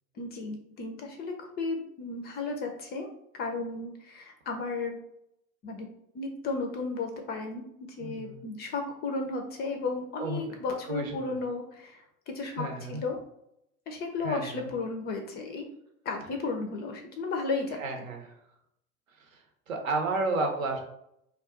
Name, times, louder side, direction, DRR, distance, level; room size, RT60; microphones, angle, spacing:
voice 1, 0.2-3.1 3.4-5.0 5.6-5.9 6.1-7.7 8.0-13.2 13.9-15.7 16.1-17.8, left 3 dB, 25° left, 3 dB, 0.4 m, -34 dB
voice 2, 8.0-8.4 10.2-10.5 10.9-11.4 12.5-13.0 14.2-14.7 17.8-18.4 19.2-20.8, right 3 dB, 75° right, 3 dB, 0.8 m, -32 dB
2.3 x 2.3 x 3.5 m, 0.78 s
figure-of-eight pair, 75°, 41 cm